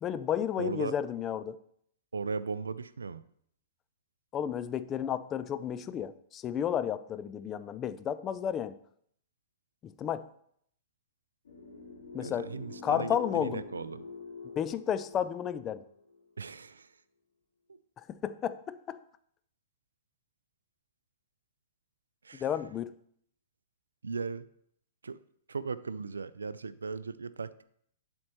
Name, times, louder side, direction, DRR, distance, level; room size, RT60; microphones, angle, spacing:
voice 1, 0.0-1.6 4.3-8.8 9.8-10.3 12.1-12.5 12.8-13.6 14.4-15.8 18.2-19.0 22.4-22.9, left 9 dB, 25° left, 13 dB, 0.4 m, -32 dB
voice 2, 0.6-0.9 2.1-3.2 12.2-14.0 16.4-17.0 17.7-17.8 22.2-22.5 24.0-24.5 25.0-25.2 25.5-27.6, right 4 dB, 80° right, 16 dB, 0.3 m, -37 dB
sound 1, 11.4-16.5, left 3 dB, 70° left, 2.6 m, -46 dB
11.5 x 4.3 x 3.0 m, 0.68 s
figure-of-eight pair, 110°, 0 cm